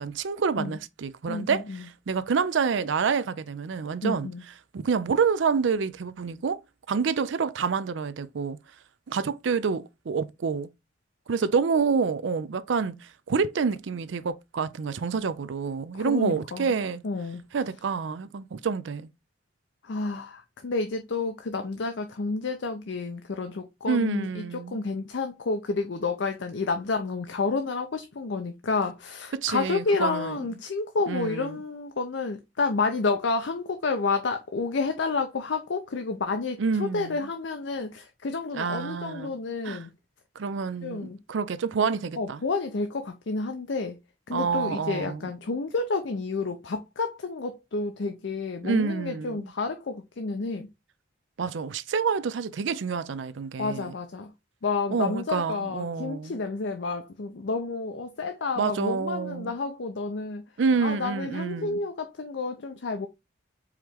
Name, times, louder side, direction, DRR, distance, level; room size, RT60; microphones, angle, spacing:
voice 1, 0.0-4.3 4.7-6.6 6.9-8.6 9.1-10.7 11.3-17.0 17.5-19.1 23.9-24.8 29.3-30.4 31.1-31.6 36.6-37.2 38.5-39.3 39.6-39.9 40.4-42.4 44.3-45.3 48.6-49.5 51.4-53.9 54.9-56.4 58.6-59.5 60.6-61.8, right 5 dB, 80° right, 0.4 m, -28 dB
voice 2, 1.3-1.8 4.0-4.4 15.9-16.7 17.0-17.4 19.8-39.9 40.8-41.2 42.2-44.0 44.3-50.7 53.6-54.3 54.6-60.4 60.8-63.1, left 3 dB, 75° left, 0.6 m, -30 dB
4.8 x 3.0 x 3.5 m
head